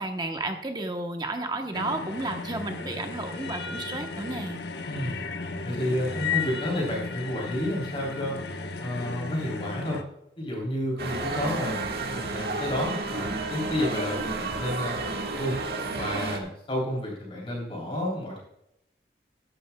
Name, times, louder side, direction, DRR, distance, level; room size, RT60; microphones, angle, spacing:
voice 1, 0.0-4.6, right 2 dB, 25° right, 4 dB, 0.9 m, -32 dB
sound 1, 1.7-10.0, left 4 dB, 75° left, 1.0 m, -34 dB
voice 2, 5.6-8.4 8.8-10.0 10.4-15.0 15.4-15.6 15.9-18.4, left 1 dB, 30° left, -2 dB, 3.4 m, -30 dB
sound 2, 11.0-16.4, right 3 dB, 60° right, 1.6 m, -31 dB
14.0 x 11.5 x 2.3 m, 0.81 s
head